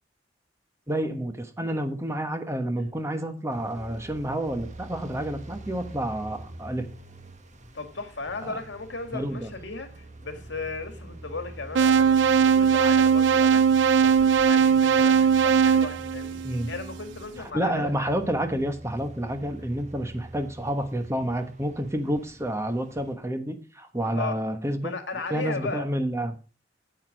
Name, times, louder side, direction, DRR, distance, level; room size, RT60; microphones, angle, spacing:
voice 1, 0.9-6.9 8.4-8.6 9.1-9.5 16.4-16.7 17.4-24.9 25.3-26.4, right 1 dB, 15° right, 1.2 m, -29 dB
sound 1, 3.5-23.2, right 1 dB, 40° right, 1.4 m, -45 dB
voice 2, 7.7-13.6 14.0-16.4 16.7-17.9 24.0-24.4 24.8-25.9, left 3 dB, 75° left, 2.0 m, -36 dB
sound 2, 11.7-16.9, right 6 dB, 80° right, 0.4 m, -20 dB
9.3 x 8.2 x 5.1 m
head